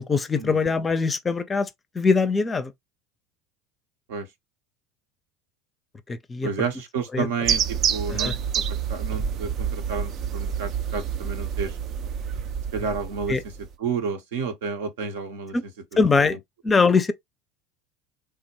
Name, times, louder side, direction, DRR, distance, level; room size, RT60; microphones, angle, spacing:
voice 1, 0.0-1.7 1.9-2.7 6.1-6.5 7.1-7.3 8.1-8.3 13.3-13.4 15.5-15.6 16.0-16.4 16.6-17.1, left 4 dB, 25° left, 0.5 m, -22 dB
voice 2, 6.4-8.6 8.9-11.8 12.7-13.4 13.8-15.6 15.9-16.3, right 5 dB, 75° right, 0.8 m, -31 dB
sound 1, 7.4-13.7, right 7 dB, 50° right, 0.4 m, -28 dB
3.3 x 2.2 x 3.0 m
hypercardioid pair, 75°, 0 cm